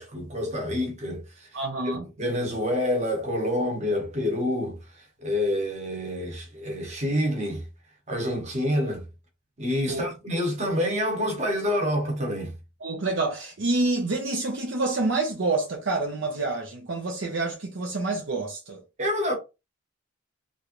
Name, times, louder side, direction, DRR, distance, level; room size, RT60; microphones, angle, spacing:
voice 1, 0.0-1.5 2.2-7.6 8.1-9.1 9.6-12.5 19.0-19.4, left 1 dB, 35° right, 1.1 m, -27 dB
voice 2, 1.5-2.1 9.9-10.1 12.8-18.8, right 2 dB, 65° right, 0.6 m, -27 dB
3.1 x 2.5 x 3.0 m
head